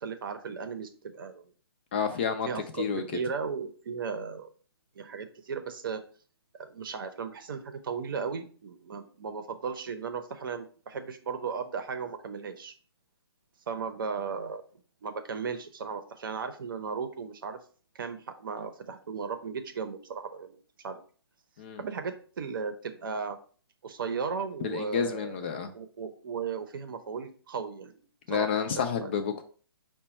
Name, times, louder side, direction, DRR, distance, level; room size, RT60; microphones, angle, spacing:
voice 1, 0.0-1.5 2.5-2.9 3.1-4.5 4.9-6.0 6.5-12.7 13.7-14.6 15.0-17.6 17.9-20.6 20.8-21.0 21.8-23.4 23.8-25.5 25.7-28.0 28.3-28.5 28.8-29.1, right 5 dB, 55° right, 8 dB, 0.7 m, -36 dB
voice 2, 1.9-2.5 2.8-3.0 21.6-21.8 24.6-25.7 28.3-29.4, left 7 dB, 25° left, 6 dB, 0.3 m, -29 dB
4.9 x 2.2 x 4.1 m, 0.42 s
hypercardioid pair, 160°, 13 cm